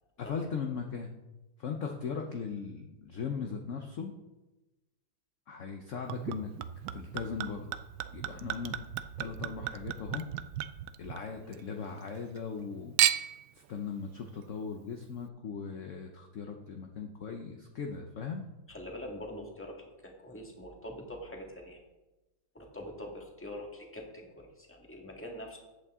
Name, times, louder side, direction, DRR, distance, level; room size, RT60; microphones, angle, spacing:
voice 1, 0.2-1.1 1.6-4.1 5.5-6.5 6.9-7.7 8.1-8.8 9.2-10.3 11.0-12.9 13.5-18.4, left 6 dB, 55° left, 3 dB, 0.9 m, -38 dB
Chink clink / Liquid, 6.1-11.6 11.9-12.6 13.0-13.5 14.2-14.3, right 13 dB, 75° right, 1.1 m, -34 dB
voice 2, 18.7-21.8 22.5-25.6, left 1 dB, 5° left, 0 dB, 1.6 m, -44 dB
14.5 x 8.4 x 3.6 m, 1.1 s
omnidirectional pair, 2.1 m